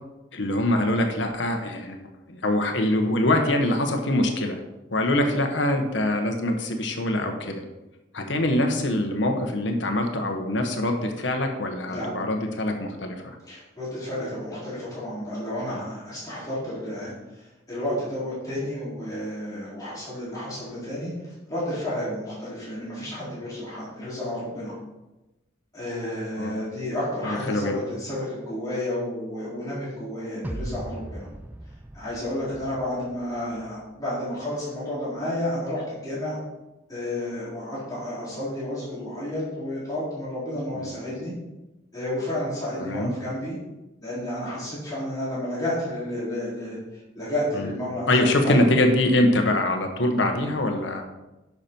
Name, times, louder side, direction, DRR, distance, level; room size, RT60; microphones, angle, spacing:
voice 1, 0.3-2.0 2.3-4.5 4.9-7.6 8.1-13.4 26.4-26.5 27.2-27.7 40.7-40.9 42.8-43.1 47.5-47.7 48.1-51.0, left 1 dB, 80° left, 4 dB, 1.2 m, -24 dB
voice 2, 13.5-24.7 25.7-31.3 31.9-36.4 36.9-41.3 41.9-43.6 44.0-46.8 47.1-48.6, left 1 dB, 20° left, -9 dB, 3.6 m, -31 dB
sound 1, 30.4-33.7, right 1 dB, 10° right, 0.4 m, -38 dB
10.5 x 6.0 x 4.5 m, 1.0 s
head